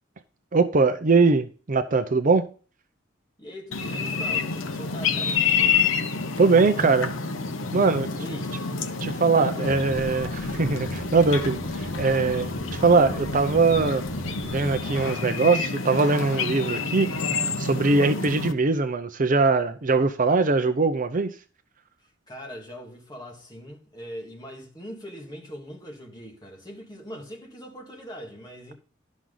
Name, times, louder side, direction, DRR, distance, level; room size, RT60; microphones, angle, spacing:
voice 1, 0.5-2.5 6.4-7.1 7.7-8.1 9.0-14.0 14.4-21.3, right 3 dB, 40° right, 0.6 m, -21 dB
voice 2, 3.4-5.4 8.2-8.6 9.4-9.9 22.3-28.7, equal, 20° left, 2.2 m, -41 dB
sound 1, 3.7-18.5, left 5 dB, 75° left, 0.9 m, -28 dB
sound 2, 9.7-15.1, equal, 10° right, 1.0 m, -39 dB
12.0 x 6.2 x 3.9 m
head